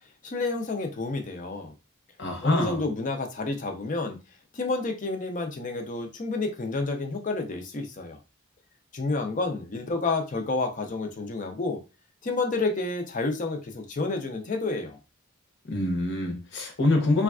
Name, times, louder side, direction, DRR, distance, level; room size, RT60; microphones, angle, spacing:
voice 1, 0.2-1.7 2.4-4.2 4.5-8.2 8.9-11.8 12.2-15.0, left 3 dB, 35° left, 0.5 m, -29 dB
voice 2, 2.2-2.8 15.7-17.2, left 2 dB, 55° left, 0.8 m, -25 dB
3.3 x 2.3 x 2.3 m
head